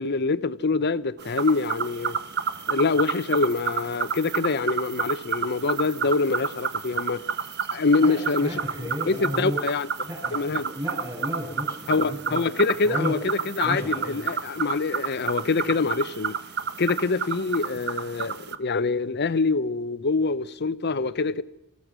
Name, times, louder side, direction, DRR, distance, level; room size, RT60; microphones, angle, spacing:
voice 1, 0.0-2.2 2.7-7.2 7.7-8.5 9.1-9.9 10.3-10.6 11.9-16.3 16.8-21.4, left 4 dB, 50° left, 0.8 m, -25 dB
sound 1, 1.2-18.5, right 6 dB, 50° right, 1.2 m, -30 dB
voice 2, 8.0-9.6 10.0-12.5 12.8-13.2 13.6-14.3, equal, 20° right, 7.0 m, -33 dB
28.5 x 15.0 x 6.2 m
head